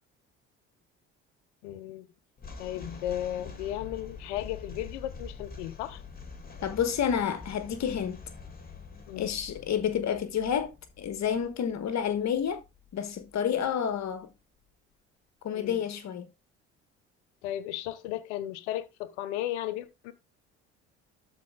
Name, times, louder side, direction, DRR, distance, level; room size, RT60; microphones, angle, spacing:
voice 1, 1.6-2.1 2.6-6.0 9.1-9.3 15.5-15.8 17.4-20.1, left 13 dB, 80° left, 0.8 m, -35 dB
sound 1, 2.4-13.7, left 4 dB, 25° left, 3.1 m, -46 dB
voice 2, 6.6-8.2 9.2-10.7 11.0-12.6 12.9-14.3 15.4-16.3, left 8 dB, 55° left, 1.4 m, -29 dB
12.5 x 4.5 x 3.7 m
hypercardioid pair, 60°, 34 cm